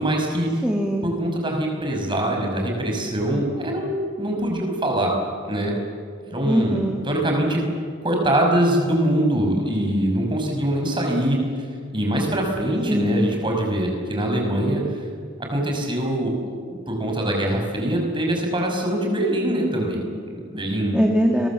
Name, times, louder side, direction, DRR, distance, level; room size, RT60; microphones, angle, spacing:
voice 1, 0.0-0.6 1.0-5.1 5.5-5.7 6.3-6.8 7.0-7.6 8.0-11.4 11.9-15.0 15.4-21.0, right 1 dB, 25° right, 1 dB, 5.6 m, -23 dB
voice 2, 0.6-1.1 6.5-7.0 12.9-13.3 20.9-21.5, equal, 5° right, 1 dB, 1.8 m, -21 dB
30.0 x 22.5 x 7.3 m, 2.1 s
head